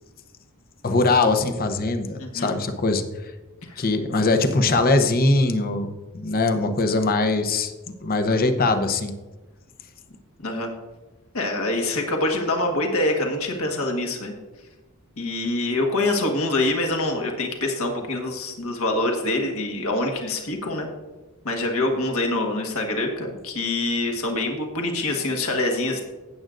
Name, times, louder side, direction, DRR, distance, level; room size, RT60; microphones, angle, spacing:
voice 1, 0.8-3.0 3.8-7.7 8.0-9.1, left 3 dB, 40° left, 8 dB, 0.8 m, -21 dB
voice 2, 2.2-2.5 3.6-3.8 10.4-10.7 11.3-14.3 15.2-20.9 21.5-26.0, left 2 dB, 70° left, 2 dB, 1.6 m, -25 dB
16.5 x 7.7 x 2.6 m, 1.2 s
head